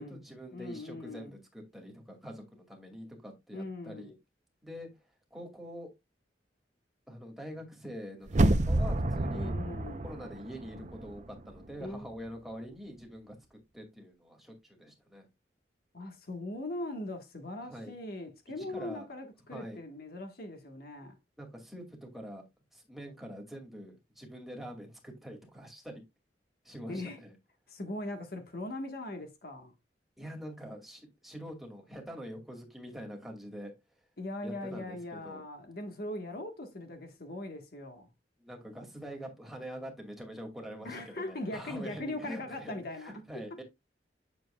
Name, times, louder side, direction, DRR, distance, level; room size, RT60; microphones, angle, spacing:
voice 1, 0.0-4.1 4.6-4.9 5.3-5.9 7.1-8.4 8.7-9.5 10.0-15.3 17.6-18.0 18.6-19.1 19.5-19.8 21.4-22.4 22.7-26.0 26.6-27.3 30.2-33.7 34.4-35.4 38.4-43.6, equal, ahead, 2.2 m, -45 dB
voice 2, 0.5-1.3 3.5-4.1 9.3-10.1 11.8-12.1 15.9-21.1 26.9-27.2 27.7-29.7 34.2-38.1 40.8-43.1 43.5-43.6, left 1 dB, 55° left, 1.4 m, -40 dB
sound 1, 8.3-11.2 11.6-11.7, right 1 dB, 40° right, 0.7 m, -29 dB
9.3 x 7.0 x 2.3 m
head